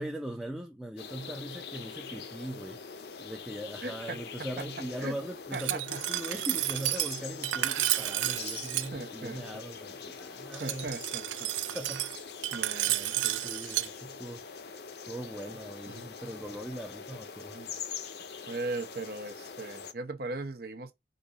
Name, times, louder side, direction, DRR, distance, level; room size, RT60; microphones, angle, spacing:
voice 1, 0.0-2.8 3.2-10.9 11.7-12.1 12.9-14.4 15.1-17.6, right 1 dB, 5° right, 0.4 m, -40 dB
sound 1, 1.0-19.9, left 5 dB, 60° left, 0.5 m, -43 dB
voice 2, 3.8-4.7 5.0-5.2 5.5-6.0 8.9-9.6 10.6-11.5 12.5-13.5 15.9-16.1 17.5-17.7 18.5-20.9, right 2 dB, 55° right, 0.8 m, -39 dB
Glass, 5.5-8.9 10.5-13.9, right 15 dB, 80° right, 0.4 m, -31 dB
5.2 x 2.6 x 3.9 m
head